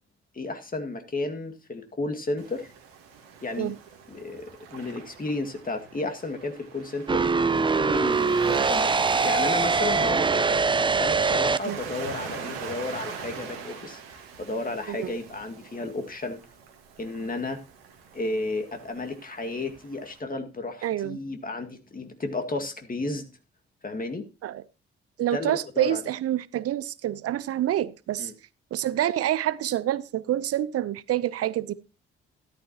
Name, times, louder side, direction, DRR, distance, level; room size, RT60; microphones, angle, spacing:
voice 1, 0.3-2.7 3.4-3.7 4.1-7.2 7.7-8.9 9.2-10.6 11.0-16.4 17.0-17.6 18.1-23.3 23.8-24.3 25.3-26.0 28.2-28.3, left 2 dB, 30° left, 2.1 m, -33 dB
Waves surf, 2.4-20.2, right 6 dB, 85° right, 1.9 m, -42 dB
sound 1, 7.1-11.6, right 4 dB, 15° right, 0.5 m, -23 dB
voice 2, 20.8-21.2 24.4-24.6 25.2-28.3 28.7-31.7, right 12 dB, 55° right, 0.7 m, -27 dB
13.0 x 12.0 x 2.9 m
figure-of-eight pair, 40°, 29 cm